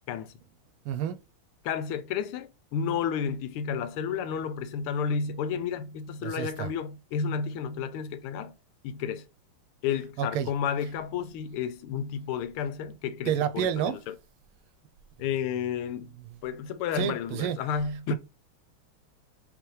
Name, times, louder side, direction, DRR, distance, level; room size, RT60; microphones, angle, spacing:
voice 1, 0.9-1.2 6.2-6.7 10.2-10.5 13.3-14.0 16.9-17.6 18.1-18.2, right 9 dB, 85° right, 1.4 m, -29 dB
voice 2, 1.6-8.5 8.8-9.3 9.8-14.1 15.2-16.1 16.4-18.2, left 7 dB, 90° left, 1.5 m, -31 dB
4.8 x 3.5 x 3.1 m
omnidirectional pair, 2.3 m